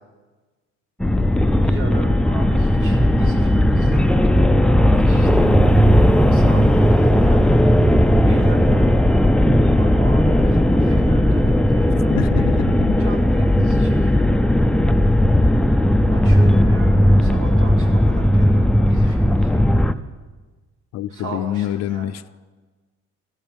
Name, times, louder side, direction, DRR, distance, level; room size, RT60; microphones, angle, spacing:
sound 1, 1.0-19.9, left 1 dB, 5° left, 0.3 m, -16 dB
voice 1, 1.6-4.4 4.9-5.5 6.3-7.6 8.2-9.0 9.8-12.7 13.0-14.3 16.1-20.1 21.1-22.2, right 3 dB, 80° right, 2.9 m, -37 dB
sound 2, 4.5-15.5 15.8-15.9, right 2 dB, 15° right, 0.9 m, -24 dB
voice 2, 12.1-13.0 13.5-13.8 20.9-22.3, left 11 dB, 60° left, 0.5 m, -26 dB
15.5 x 11.5 x 5.2 m
cardioid pair, 120°, 30 cm